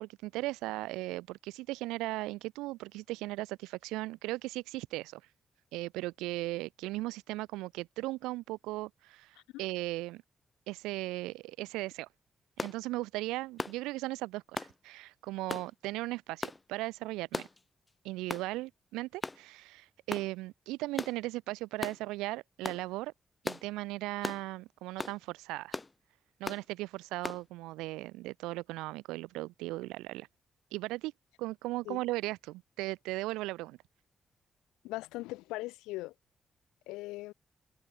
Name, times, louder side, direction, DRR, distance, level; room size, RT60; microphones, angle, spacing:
voice 1, 0.0-5.2 5.7-10.2 10.7-12.1 12.6-17.5 18.0-23.1 23.4-25.8 26.4-30.3 30.7-31.1 31.4-33.8, right 19 dB, 85° right, 3.2 m, -37 dB
sound 1, 12.6-12.8 13.6-13.8 14.6-14.7 15.5-15.7 16.4-16.6 17.3-17.6 18.3-18.5 19.2-19.4 20.1-20.3 21.0-21.2 21.8-22.0 22.6-22.8 23.4-23.7 24.2-24.4 25.0-25.2 25.7-25.9 26.4-26.6 27.2-27.4, left 3 dB, 30° left, 4.7 m, -37 dB
voice 2, 34.8-36.1 36.9-37.3, left 20 dB, 85° left, 4.2 m, -39 dB
hypercardioid pair, 40°, 0 cm